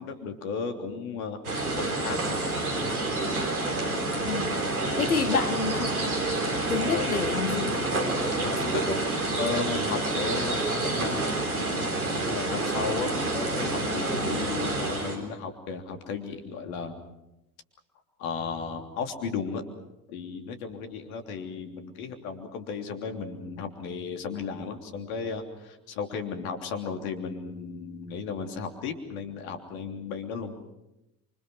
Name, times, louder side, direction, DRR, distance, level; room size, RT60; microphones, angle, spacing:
voice 1, 0.0-1.4 1.8-2.4 5.1-5.4 6.9-7.2 8.3-11.2 11.5-11.9 12.3-17.0 18.2-19.6 20.1-30.5, left 5 dB, 75° left, 5 dB, 3.3 m, -35 dB
sound 1, 1.4-15.2, right 2 dB, 85° right, 4.2 m, -28 dB
voice 2, 5.0-6.0 6.7-7.9, left 5 dB, 90° left, 10 dB, 1.8 m, -28 dB
27.5 x 25.5 x 6.4 m, 0.89 s
figure-of-eight pair, 50°, 43 cm